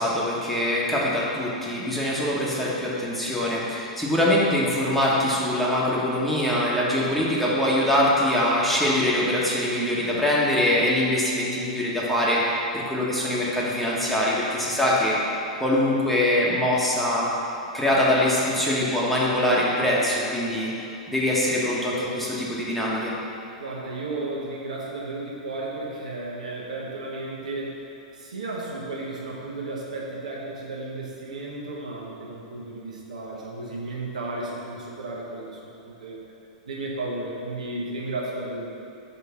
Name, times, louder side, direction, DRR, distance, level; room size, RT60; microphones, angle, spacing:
voice 1, 0.0-12.4 12.9-15.1 15.6-17.3 17.7-23.1, left 1 dB, 5° left, -6 dB, 1.2 m, -23 dB
voice 2, 23.6-27.8 28.1-36.2 36.7-38.7, right 2 dB, 80° right, -4 dB, 1.3 m, -33 dB
4.7 x 4.2 x 5.7 m, 2.8 s
hypercardioid pair, 105°, 4 cm